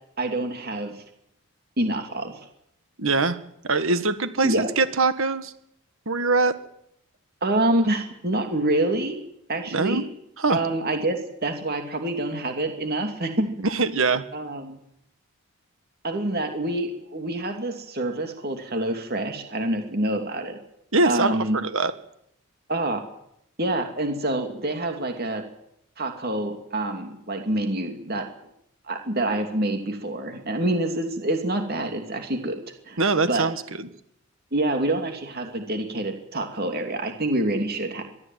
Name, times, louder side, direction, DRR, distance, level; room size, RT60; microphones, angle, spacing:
voice 1, 0.2-1.0 1.8-2.5 4.4-4.7 7.4-9.2 9.5-10.0 10.5-13.7 14.3-14.8 16.0-20.6 21.0-21.6 22.7-23.0 23.6-25.4 26.0-28.3 28.9-32.6 32.8-33.0 33.3-33.4 34.5-38.0, right 1 dB, 45° right, 5 dB, 2.7 m, -26 dB
voice 2, 3.0-3.4 3.6-5.5 6.0-6.5 9.7-10.0 10.4-10.6 13.7-14.2 20.9-21.9 33.0-33.9, right 3 dB, 60° right, 12 dB, 1.6 m, -23 dB
23.0 x 14.0 x 9.3 m, 0.76 s
head